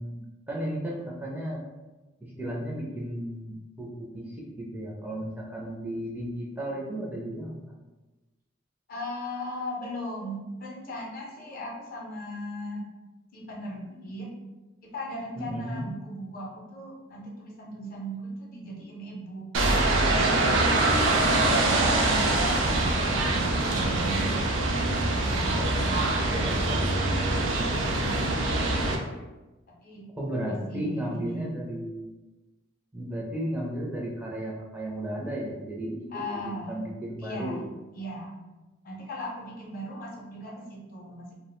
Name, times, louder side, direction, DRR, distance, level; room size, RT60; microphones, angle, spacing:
voice 1, 0.0-1.6 2.2-3.9 4.1-7.6 15.4-15.8 30.2-32.1 32.9-36.1 36.5-37.7, right 1 dB, 10° right, -4 dB, 0.4 m, -34 dB
voice 2, 8.9-12.9 13.3-14.3 14.8-19.5 20.1-20.9 21.4-28.8 29.7-30.1 30.5-31.5 36.1-36.8 37.2-37.6 37.9-38.4 38.8-41.3, equal, 50° left, -2 dB, 0.5 m, -38 dB
sound 1, 19.5-29.0, right 2 dB, 70° right, 0.4 m, -24 dB
2.3 x 2.0 x 3.0 m, 1.1 s
head